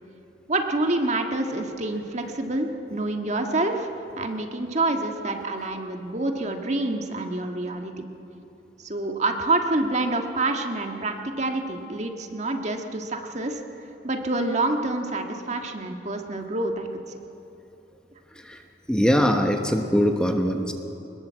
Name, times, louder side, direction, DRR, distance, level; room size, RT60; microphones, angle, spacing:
voice 1, 0.5-3.9 4.2-8.1 8.8-13.6 14.0-16.9, right 2 dB, 40° right, 4 dB, 1.7 m, -27 dB
voice 2, 18.9-20.7, equal, 5° left, 4 dB, 1.2 m, -22 dB
23.5 x 20.5 x 7.6 m, 2.9 s
head